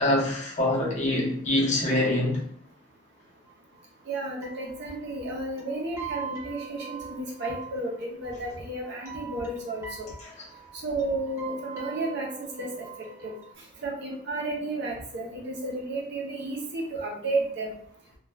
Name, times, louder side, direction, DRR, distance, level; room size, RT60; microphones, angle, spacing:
voice 1, 0.0-2.4, left 1 dB, 40° left, -4 dB, 0.8 m, -24 dB
sound 1, 3.5-3.6 3.8-3.9 4.1-4.2 4.4-13.5, right 6 dB, 15° right, 0.9 m, -43 dB
voice 2, 4.1-10.1 10.8-12.8 13.2-13.3 13.8-17.7, right 2 dB, 60° right, -1 dB, 0.7 m, -32 dB
2.4 x 2.3 x 3.1 m, 0.63 s
head